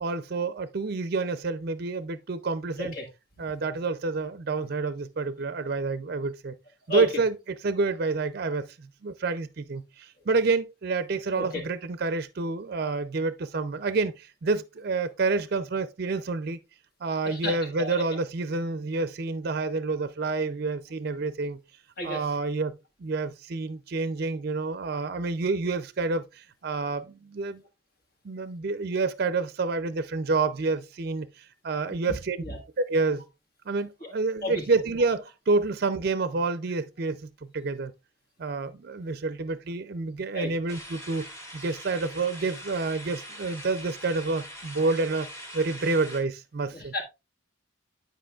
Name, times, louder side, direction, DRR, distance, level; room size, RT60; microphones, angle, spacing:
voice 1, 0.0-2.9 3.4-6.5 6.9-16.6 17.0-21.6 22.0-22.7 23.0-27.6 28.2-32.4 32.8-33.2 33.7-37.9 38.4-41.3 41.5-45.3 45.5-46.9, right 3 dB, 50° right, 0.5 m, -28 dB
voice 2, 17.2-18.0 22.0-22.2 32.4-32.6 34.0-34.1 34.4-34.6 40.3-40.5 46.7-47.0, left 1 dB, 50° left, 1.7 m, -32 dB
sound 1, 40.7-46.2, equal, 15° left, 2.0 m, -43 dB
10.0 x 5.0 x 2.3 m
head